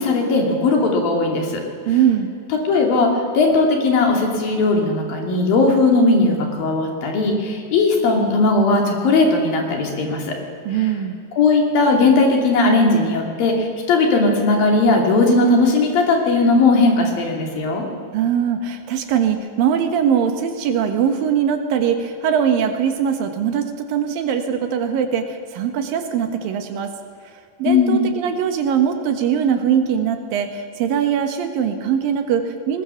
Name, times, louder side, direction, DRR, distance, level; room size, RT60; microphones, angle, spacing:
voice 1, 0.0-1.6 2.7-10.4 11.3-17.8 27.6-28.1, left 3 dB, 75° left, 1 dB, 4.7 m, -17 dB
voice 2, 1.9-2.3 10.7-11.2 18.1-26.9 27.6-32.8, right 8 dB, 80° right, 7 dB, 3.1 m, -21 dB
20.5 x 20.5 x 7.1 m, 2.4 s
omnidirectional pair, 4.1 m